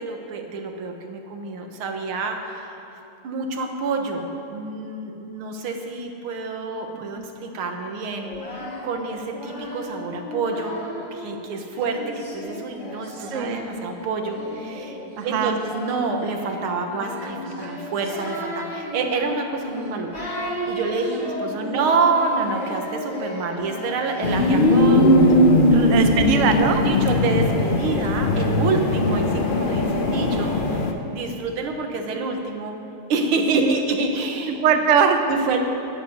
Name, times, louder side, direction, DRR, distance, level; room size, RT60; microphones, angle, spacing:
voice 1, 0.0-2.7 3.2-10.8 11.1-15.0 15.2-20.3 20.7-25.3 25.7-25.9 26.4-32.8 33.1-34.6 35.3-35.6, right 4 dB, 90° right, 4 dB, 2.0 m, -27 dB
Singing, 8.1-11.2 11.7-26.2, left 1 dB, 25° left, 2.6 m, -35 dB
voice 2, 13.2-13.6 15.2-15.6 21.4-21.9 25.9-26.8 30.0-30.8 33.5-33.8 34.5-35.3, right 6 dB, 50° right, 6 dB, 0.9 m, -23 dB
sound 1, 24.2-30.9, left 1 dB, 75° left, 0.4 m, -19 dB
11.5 x 8.0 x 9.3 m, 2.8 s
omnidirectional pair, 2.2 m